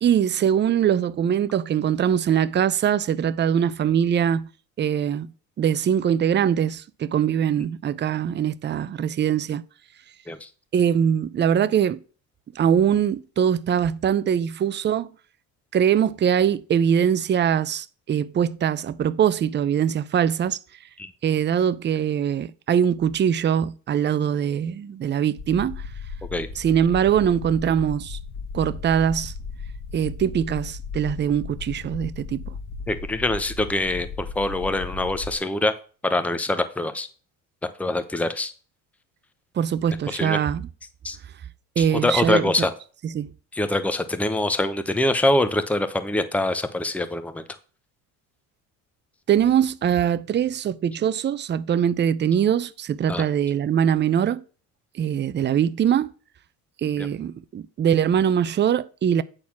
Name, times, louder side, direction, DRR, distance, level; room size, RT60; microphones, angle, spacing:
voice 1, 0.0-4.5 4.8-5.3 5.6-9.6 10.7-12.0 12.6-15.1 15.7-20.6 21.2-25.8 26.6-28.2 28.5-29.3 29.9-32.5 39.6-40.6 41.8-42.7 43.1-43.3 49.3-54.4 55.0-56.1 56.8-59.2, right 8 dB, 25° right, 0.5 m, -22 dB
sound 1, 25.4-35.4, left 4 dB, 45° left, 1.9 m, -36 dB
voice 2, 32.9-35.7 36.0-37.1 37.8-38.5 40.1-40.4 41.0-41.2 41.8-42.7 43.5-47.4 53.1-53.2 57.0-57.1, left 2 dB, 5° left, 0.9 m, -24 dB
8.9 x 4.2 x 5.9 m
supercardioid pair, 80°, 41 cm